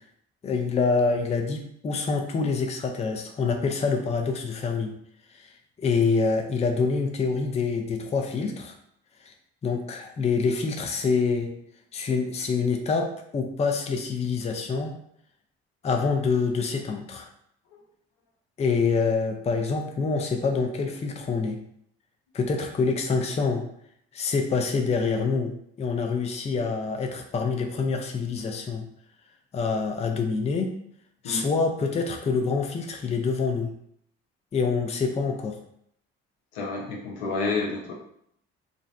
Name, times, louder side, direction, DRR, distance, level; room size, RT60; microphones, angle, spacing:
voice 1, 0.4-4.9 5.4-5.5 5.8-8.7 9.6-11.5 11.9-14.9 15.8-17.3 18.6-21.6 22.3-23.6 24.1-25.5 25.8-28.8 29.5-30.7 31.2-33.7 34.5-35.6, left 4 dB, 20° left, 4 dB, 0.4 m, -26 dB
voice 2, 36.5-37.9, left 3 dB, 80° left, 0 dB, 0.6 m, -29 dB
2.5 x 2.0 x 2.4 m, 0.69 s
hypercardioid pair, 50°, 31 cm